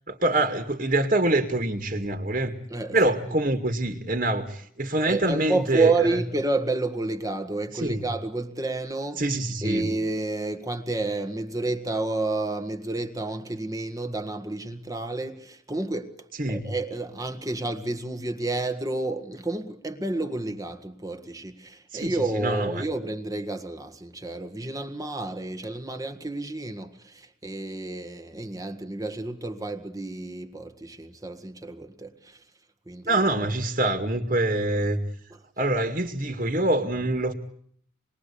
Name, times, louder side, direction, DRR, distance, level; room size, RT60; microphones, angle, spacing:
voice 1, 0.1-2.5 2.9-6.2 7.7-8.0 9.2-9.9 16.4-16.7 21.9-22.9 33.1-35.0 35.6-37.3, right 2 dB, 40° right, 2.2 m, -25 dB
voice 2, 2.7-3.4 5.1-9.2 9.6-32.4 32.9-33.2 35.3-35.4, right 2 dB, 20° right, 1.7 m, -30 dB
27.5 x 21.5 x 8.5 m
head